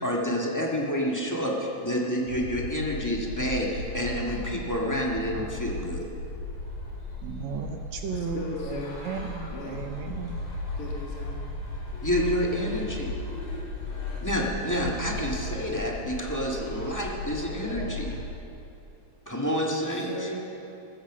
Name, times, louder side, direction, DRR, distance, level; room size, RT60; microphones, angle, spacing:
voice 1, 0.0-6.0 12.0-13.1 14.2-18.1 19.2-20.3, equal, 10° left, -2 dB, 1.0 m, -29 dB
sound 1, 2.3-18.3, left 2 dB, 80° left, 4.9 m, -36 dB
voice 2, 7.2-10.4, right 6 dB, 75° right, 5 dB, 2.2 m, -35 dB
voice 3, 8.1-8.9 9.5-9.8 10.8-11.4 19.8-20.3, left 2 dB, 35° left, -1 dB, 2.1 m, -37 dB
15.5 x 14.5 x 6.2 m, 2.8 s
omnidirectional pair, 3.4 m